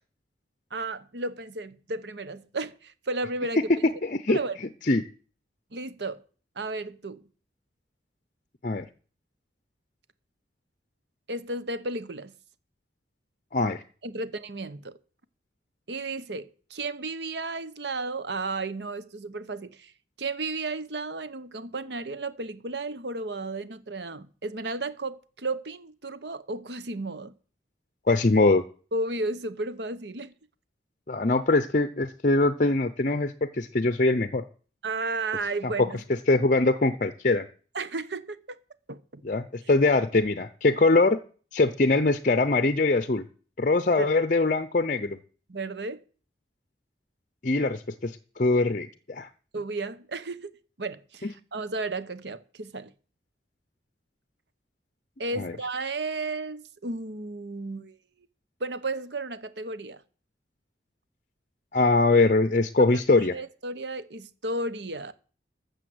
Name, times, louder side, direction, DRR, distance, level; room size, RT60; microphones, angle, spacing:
voice 1, 0.7-3.9 4.3-4.6 5.7-6.2 6.6-7.2 11.3-12.3 14.0-15.0 15.9-19.9 20.2-27.3 28.9-30.3 34.8-36.0 37.7-38.6 38.9-39.2 44.0-44.1 45.5-46.0 49.5-52.9 55.2-57.9 58.6-60.0 62.8-63.0 63.3-65.1, right 2 dB, 80° right, 1.0 m, -33 dB
voice 2, 4.0-4.4 4.9-5.0 8.6-8.9 13.5-13.8 28.1-28.6 31.1-34.4 36.3-37.5 39.2-41.2 41.5-43.3 43.6-45.2 47.4-49.3 51.2-51.3 55.4-55.5 61.7-63.3, left 2 dB, 45° left, 0.7 m, -22 dB
13.5 x 6.8 x 7.9 m
head